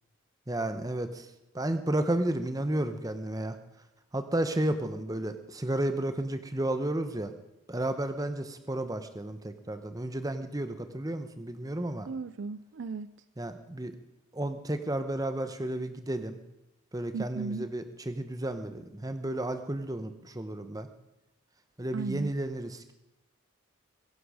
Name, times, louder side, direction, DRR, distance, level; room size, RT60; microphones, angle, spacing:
voice 1, 0.5-1.3 1.5-3.6 4.1-7.3 7.7-12.1 13.4-13.9 14.3-16.4 16.9-20.9 21.8-22.9, right 1 dB, 15° right, 9 dB, 0.9 m, -32 dB
voice 2, 12.1-13.1 17.1-17.7 21.9-22.3, right 4 dB, 55° right, 15 dB, 0.4 m, -36 dB
21.5 x 11.0 x 5.0 m, 0.92 s
head